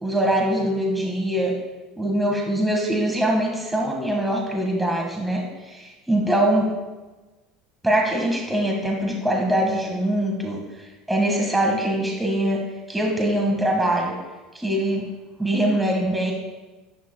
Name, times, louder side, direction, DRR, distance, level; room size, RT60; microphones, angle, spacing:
voice 1, 0.0-1.6 2.0-6.7 7.8-10.6 11.1-12.6 12.9-14.1 14.5-15.0 15.4-16.3, right 1 dB, 10° right, 0 dB, 1.8 m, -23 dB
12.5 x 11.5 x 2.3 m, 1.2 s
hypercardioid pair, 90°, 0 cm